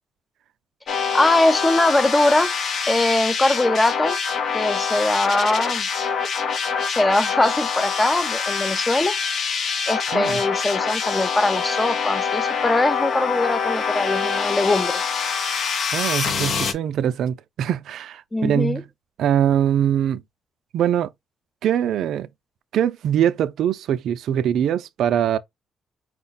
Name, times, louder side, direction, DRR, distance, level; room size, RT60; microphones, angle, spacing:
sound 1, 0.9-16.7, left 6 dB, 60° left, 0.7 m, -25 dB
voice 1, 1.1-2.5 2.9-4.2 4.5-5.9 7.0-9.2 9.9-14.9 18.3-18.8, left 2 dB, 15° left, 0.5 m, -21 dB
voice 2, 15.9-18.8 19.2-20.2 20.7-21.1 21.6-22.3 22.7-25.4, right 10 dB, 75° right, 0.4 m, -22 dB
4.7 x 2.1 x 4.0 m
cardioid pair, 90°, 0 cm